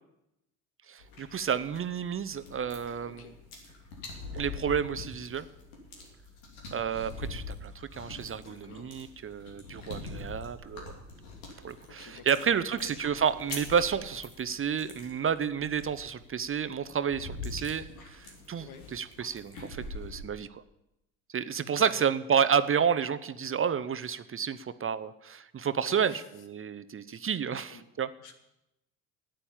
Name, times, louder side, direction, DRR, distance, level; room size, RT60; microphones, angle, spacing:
voice 1, 0.9-3.2 4.3-5.5 6.7-10.9 11.6-20.6 21.3-26.1 26.5-28.1, right 7 dB, 30° right, 14 dB, 0.7 m, -30 dB
sound 1, 1.0-20.2, left 3 dB, 85° left, 3.1 m, -44 dB
voice 2, 8.3-8.9 12.0-12.2 12.7-13.0 18.6-18.8 21.7-22.1 25.8-26.2 27.1-27.3 27.7-27.8 28.2-28.3, left 5 dB, 65° left, 6 dB, 2.1 m, -48 dB
9.8 x 9.1 x 8.9 m, 0.88 s
hypercardioid pair, 65°, 41 cm